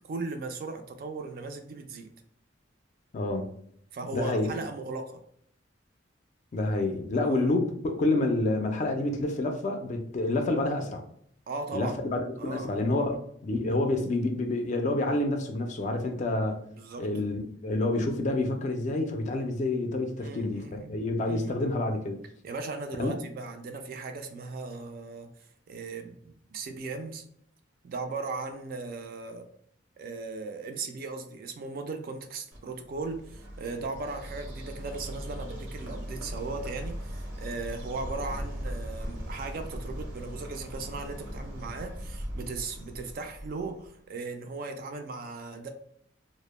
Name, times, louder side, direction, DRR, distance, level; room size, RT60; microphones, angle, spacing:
voice 1, 0.0-2.1 3.9-5.2 7.2-7.5 11.5-12.0 12.4-13.1 16.7-17.1 20.2-21.0 21.3-21.6 22.4-25.3 25.7-27.2 27.8-29.5 30.0-45.7, right 3 dB, 50° right, 0.3 m, -37 dB
voice 2, 3.1-3.5 4.1-4.5 6.5-11.0 11.7-16.6 17.0-22.2 23.0-23.2, left 2 dB, 40° left, 0.3 m, -28 dB
Bird, 32.5-43.9, equal, 80° right, 0.7 m, -39 dB
2.0 x 2.0 x 3.0 m
head